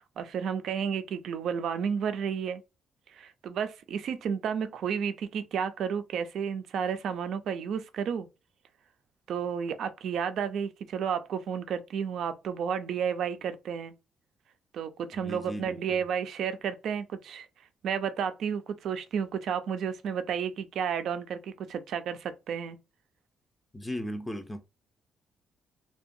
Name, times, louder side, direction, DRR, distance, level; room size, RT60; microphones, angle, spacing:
voice 1, 0.2-2.6 3.1-8.3 9.3-13.9 14.7-17.5 17.8-22.8, right 7 dB, 70° right, 0.4 m, -32 dB
voice 2, 15.1-16.0 23.7-24.6, equal, 10° left, 0.4 m, -37 dB
2.7 x 2.2 x 2.5 m
cardioid pair, 90°, 0 cm